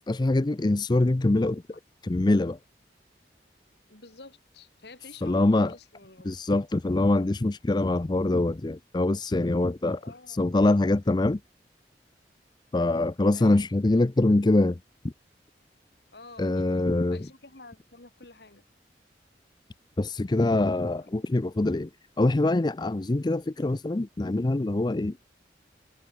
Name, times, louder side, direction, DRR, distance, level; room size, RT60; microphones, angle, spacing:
voice 1, 0.1-1.6 2.0-2.6 5.2-5.7 6.3-10.0 10.4-11.4 12.7-14.8 16.4-17.3 20.0-21.9 22.2-25.2, left 2 dB, 25° left, 0.5 m, -24 dB
voice 2, 3.9-6.3 10.0-10.5 13.3-13.7 16.1-18.6 21.0-21.2, left 3 dB, 65° left, 3.1 m, -49 dB
head